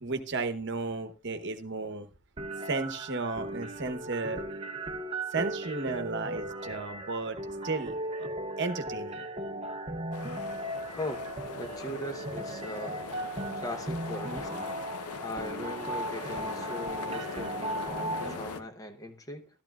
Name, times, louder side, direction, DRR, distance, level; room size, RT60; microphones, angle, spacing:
voice 1, 0.0-2.1 2.7-4.4 5.3-7.4 7.6-8.3 8.6-9.2, right 3 dB, 50° right, 1.0 m, -34 dB
sound 1, 2.4-18.4, right 1 dB, 25° right, 0.8 m, -37 dB
sound 2, 10.1-18.6, left 4 dB, 85° left, 0.8 m, -40 dB
voice 2, 10.9-11.2 11.5-13.0 13.6-14.7 15.2-19.5, left 1 dB, 15° left, 0.8 m, -39 dB
13.5 x 11.5 x 2.4 m
head